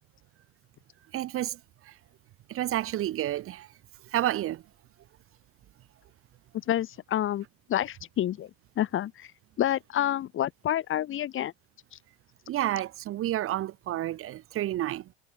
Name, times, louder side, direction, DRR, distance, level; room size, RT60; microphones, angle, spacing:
voice 1, 1.1-1.6 2.5-3.7 4.1-4.6 12.5-15.0, right 13 dB, 40° right, 0.9 m, -30 dB
voice 2, 6.5-8.5 8.8-9.3 9.6-11.5 11.9-12.0, left 12 dB, 35° left, 1.0 m, -29 dB
hypercardioid pair, 90°, 35 cm